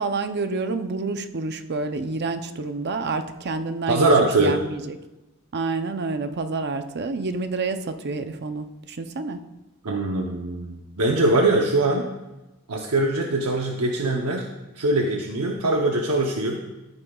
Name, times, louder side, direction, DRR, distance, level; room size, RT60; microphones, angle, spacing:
voice 1, 0.0-5.0 5.5-9.4, right 3 dB, 50° right, 8 dB, 0.6 m, -28 dB
voice 2, 3.9-4.6 9.8-12.1 12.7-14.5 14.8-16.6, right 2 dB, 80° right, 1 dB, 0.8 m, -22 dB
13.5 x 8.8 x 2.3 m, 1.0 s
head